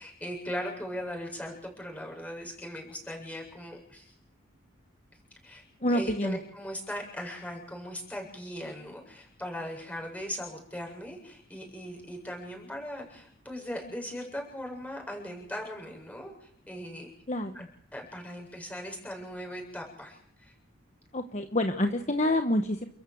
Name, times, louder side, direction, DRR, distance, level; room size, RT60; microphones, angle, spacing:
voice 1, 0.0-4.1 5.4-17.1 17.5-17.6 17.9-20.5, equal, 5° left, 0 dB, 7.8 m, -39 dB
voice 2, 5.8-6.4 17.3-17.5 21.1-22.9, left 1 dB, 35° left, 6 dB, 1.3 m, -27 dB
29.5 x 14.5 x 8.0 m, 0.68 s
head